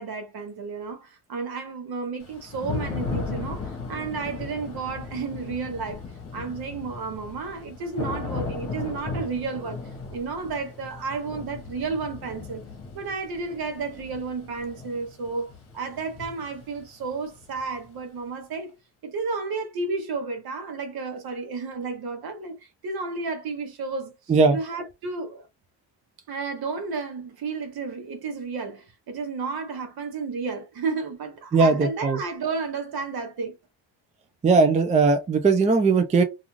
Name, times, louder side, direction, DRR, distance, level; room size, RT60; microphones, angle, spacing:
voice 1, 0.0-6.0 6.3-9.8 10.1-12.6 12.9-18.7 19.0-24.1 24.5-25.5 26.3-33.5, right 4 dB, 55° right, 0.9 m, -32 dB
Thunder / Rain, 2.2-18.0, left 4 dB, 30° left, 1.1 m, -36 dB
voice 2, 31.5-32.2 34.4-36.2, right 4 dB, 20° right, 0.3 m, -19 dB
2.5 x 2.4 x 3.0 m
cardioid pair, 120°, 43 cm